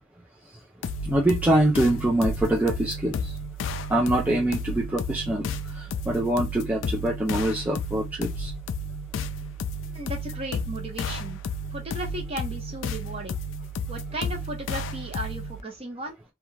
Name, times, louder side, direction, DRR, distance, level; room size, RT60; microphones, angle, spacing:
sound 1, 0.8-15.6, left 2 dB, 65° left, 0.3 m, -32 dB
voice 1, 1.0-3.3 3.9-5.5 5.7-8.5, right 1 dB, 5° right, 0.4 m, -24 dB
voice 2, 9.8-11.4 11.7-13.3 13.9-16.2, right 1 dB, 30° right, 0.8 m, -35 dB
2.3 x 2.3 x 3.1 m
head